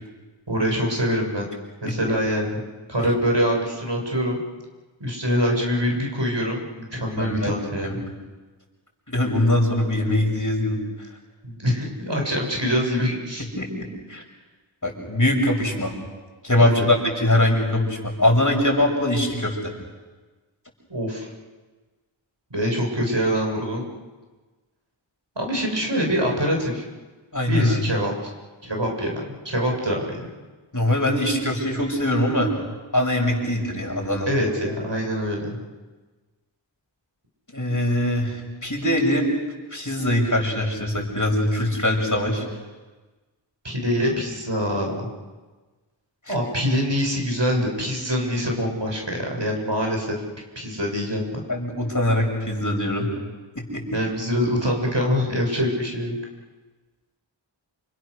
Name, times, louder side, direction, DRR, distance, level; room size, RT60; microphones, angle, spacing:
voice 1, 0.5-1.4 1.8-2.6 2.9-4.4 5.0-8.0 11.4-13.5 16.6-16.9 20.9-21.3 22.5-23.9 25.4-26.8 27.5-28.3 28.6-30.3 34.3-35.6 43.6-45.1 46.3-50.2 50.6-51.4 53.9-56.1, equal, 65° right, 0 dB, 7.5 m, -24 dB
voice 2, 7.2-7.6 7.8-8.0 9.1-10.8 13.6-14.2 14.8-15.9 16.4-19.6 27.3-27.8 30.7-32.5 32.9-34.3 37.5-39.3 39.7-42.5 46.3-46.4 51.5-53.1 53.6-53.8, left 1 dB, 40° left, 1 dB, 7.2 m, -22 dB
29.5 x 28.5 x 6.7 m, 1.3 s
wide cardioid pair, 40°, 47 cm